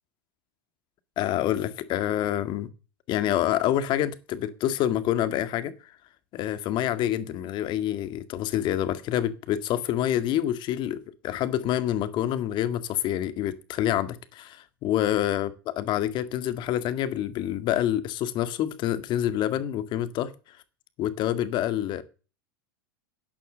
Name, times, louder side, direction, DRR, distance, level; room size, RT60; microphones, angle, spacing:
voice 1, 1.2-2.7 3.1-5.9 6.3-20.6 21.0-22.0, left 12 dB, 40° left, 1.8 m, -27 dB
11.0 x 11.0 x 7.7 m
hypercardioid pair, 90°, 12 cm